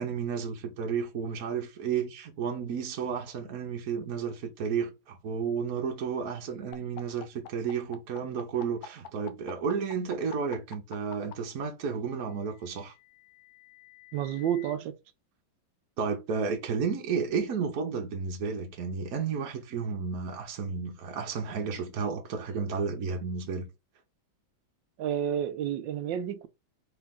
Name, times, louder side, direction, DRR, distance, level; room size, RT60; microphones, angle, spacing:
voice 1, 0.0-12.9 16.0-23.7, right 6 dB, 60° right, 1.2 m, -32 dB
sound 1, 6.7-11.3 12.5-14.7, left 10 dB, 85° left, 1.5 m, -46 dB
voice 2, 14.1-14.9 25.0-26.5, right 9 dB, 80° right, 1.4 m, -30 dB
3.8 x 3.8 x 3.6 m
omnidirectional pair, 2.0 m